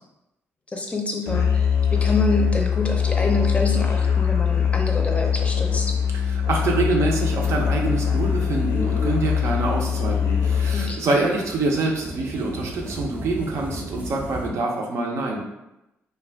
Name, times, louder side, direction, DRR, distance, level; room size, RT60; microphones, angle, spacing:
voice 1, 0.7-5.9 10.7-11.2, left 2 dB, 25° left, 2 dB, 0.5 m, -27 dB
Musical instrument, 1.3-11.0, left 7 dB, 80° left, 0.5 m, -22 dB
voice 2, 6.1-15.4, right 2 dB, 70° right, 0 dB, 0.5 m, -25 dB
sound 1, 7.4-14.5, equal, 25° right, 0.5 m, -37 dB
2.3 x 2.2 x 3.4 m, 0.91 s
cardioid pair, 80°, 5 cm